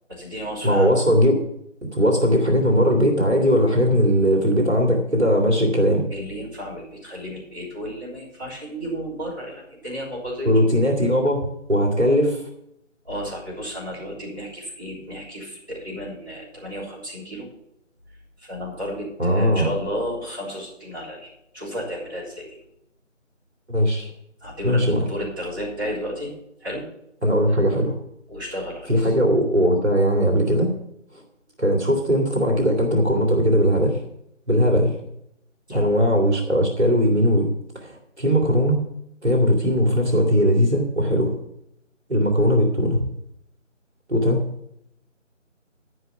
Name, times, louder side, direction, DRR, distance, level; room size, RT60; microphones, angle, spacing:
voice 1, 0.1-0.9 6.1-10.5 13.0-17.5 18.4-22.5 24.4-26.3 26.6-26.8 28.3-29.1 35.7-35.9, equal, 15° right, -11 dB, 3.6 m, -33 dB
voice 2, 0.6-1.4 1.8-6.1 10.4-12.4 19.2-19.7 23.7-24.1 24.6-25.0 27.2-28.0 28.9-30.7 31.6-34.0 34.5-35.0 35.7-37.5 37.8-38.8 39.2-41.3 42.1-43.1 44.1-44.5, equal, 60° right, 2 dB, 2.4 m, -19 dB
13.0 x 5.7 x 7.0 m, 0.77 s
figure-of-eight pair, 175°, 38 cm